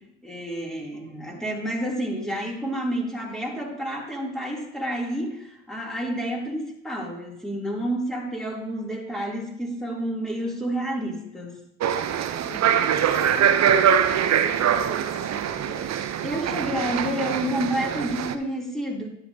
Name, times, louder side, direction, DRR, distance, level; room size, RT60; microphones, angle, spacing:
voice 1, 0.2-11.6 16.2-19.1, right 1 dB, ahead, -3 dB, 2.8 m, -29 dB
sound 1, 11.8-18.3, right 8 dB, 50° right, 0.7 m, -23 dB
voice 2, 12.4-16.2, right 2 dB, 65° right, -2 dB, 2.1 m, -40 dB
10.5 x 8.2 x 2.8 m, 0.80 s
hypercardioid pair, 55°, 34 cm